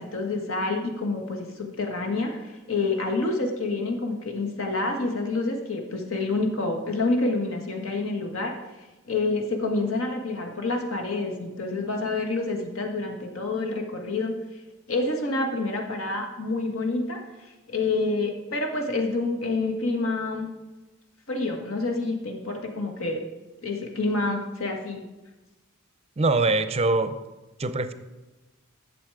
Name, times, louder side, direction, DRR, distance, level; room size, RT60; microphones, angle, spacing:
voice 1, 0.0-8.5 9.1-14.4 14.9-20.5 21.3-23.2 23.6-25.0, left 3 dB, 70° left, 2 dB, 1.6 m, -28 dB
voice 2, 26.2-27.1 27.6-27.9, right 2 dB, 30° right, 11 dB, 0.6 m, -23 dB
11.0 x 7.1 x 4.8 m, 1.1 s
head